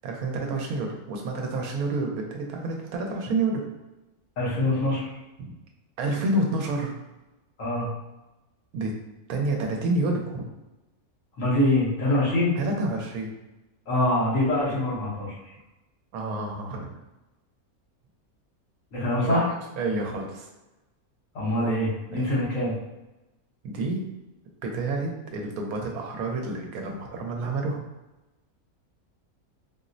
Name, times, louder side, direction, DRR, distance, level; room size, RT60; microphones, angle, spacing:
voice 1, 0.0-3.6 5.4-5.5 6.0-6.9 8.7-9.0 9.3-10.4 12.6-13.3 16.1-17.0 19.3-20.5 22.1-22.3 23.6-24.0 24.6-27.8, right 2 dB, 80° right, 1 dB, 1.1 m, -29 dB
voice 2, 4.4-5.1 7.6-7.9 11.4-12.6 13.9-15.4 18.9-19.5 21.3-22.7, left 1 dB, 60° left, -5 dB, 1.3 m, -24 dB
4.2 x 2.0 x 2.5 m, 1.0 s
omnidirectional pair, 1.6 m